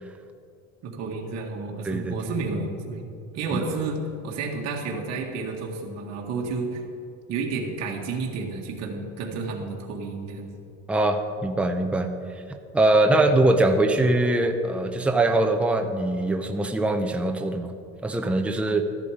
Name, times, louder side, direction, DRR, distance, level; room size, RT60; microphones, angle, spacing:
voice 1, 0.8-3.0 3.3-6.8 7.3-10.5 13.1-13.3, right 3 dB, 60° right, -1 dB, 1.9 m, -31 dB
voice 2, 1.8-2.2 3.5-3.6 10.9-12.1 12.7-17.7 18.0-18.8, right 2 dB, 5° right, 5 dB, 0.7 m, -22 dB
14.0 x 11.0 x 5.1 m, 2.5 s
cardioid pair, 135°, 30 cm